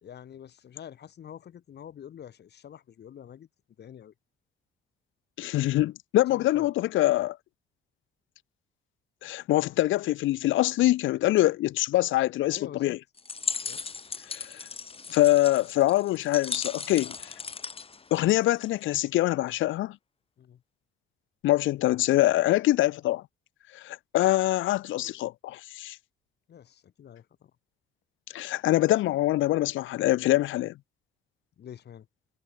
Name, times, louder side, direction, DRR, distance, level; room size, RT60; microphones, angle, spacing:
voice 1, 0.0-3.5 3.8-4.1 6.3-6.7 12.5-13.0 13.6-13.8 20.4-20.6 26.5-27.5 31.6-32.1, left 9 dB, 60° left, 1.7 m, -46 dB
voice 2, 5.4-7.4 9.2-13.0 14.3-14.6 15.1-17.3 18.1-20.0 21.4-23.2 23.7-26.0 28.3-30.7, left 16 dB, 80° left, 0.6 m, -24 dB
sound 1, 13.2-18.8, left 5 dB, 30° left, 1.2 m, -37 dB
cardioid pair, 90°, 20 cm